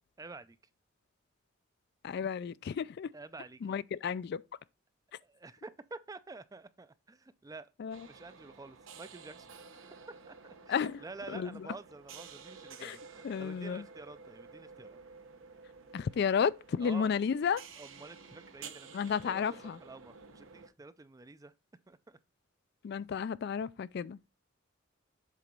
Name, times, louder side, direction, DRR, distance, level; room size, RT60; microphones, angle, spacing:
voice 1, 0.2-0.6 3.1-3.8 5.2-9.5 10.3-15.0 16.8-17.2 17.8-19.4 19.8-21.5 21.9-22.2, right 3 dB, 15° right, 0.4 m, -49 dB
voice 2, 2.0-3.1 3.6-4.4 7.8-8.0 10.7-11.0 11.3-11.5 12.8-13.0 13.2-13.8 15.9-17.6 18.9-19.8 22.8-24.2, left 6 dB, 55° left, 0.3 m, -32 dB
sound 1, 7.9-20.7, right 5 dB, 75° right, 1.0 m, -52 dB
7.5 x 4.1 x 5.2 m
head